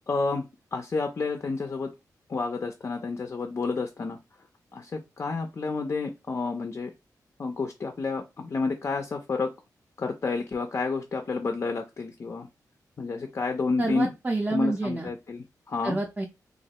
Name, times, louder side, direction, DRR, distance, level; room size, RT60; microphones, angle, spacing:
voice 1, 0.1-0.4 0.7-1.9 2.3-4.2 4.7-6.9 7.4-9.5 10.0-12.5 13.0-14.1 14.5-16.0, left 4 dB, 40° left, 5 dB, 0.4 m, -30 dB
voice 2, 13.8-15.1 15.8-16.3, right 2 dB, 20° right, 1 dB, 0.5 m, -28 dB
3.1 x 2.4 x 2.8 m, 0.25 s
wide cardioid pair, 115°, 7 cm